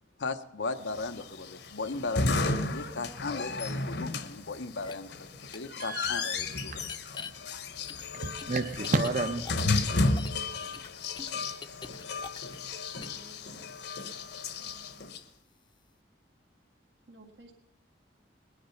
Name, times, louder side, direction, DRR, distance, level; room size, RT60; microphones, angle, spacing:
voice 1, 0.2-6.9, left 3 dB, 85° left, 7 dB, 0.9 m, -37 dB
sound 1, 0.9-15.2, left 3 dB, 65° left, 1.1 m, -33 dB
sound 2, 4.8-4.9 5.5-5.6 6.8-7.3 7.9-10.4 10.7-12.7 13.0-13.2, left 5 dB, 25° left, 0.7 m, -44 dB
voice 2, 5.8-7.0 8.2-9.7, right 3 dB, 45° right, 5 dB, 0.8 m, -32 dB
voice 3, 12.9-13.6 14.6-15.1 17.1-17.5, right 2 dB, 75° right, 3 dB, 2.0 m, -55 dB
20.0 x 10.0 x 5.7 m, 0.89 s
head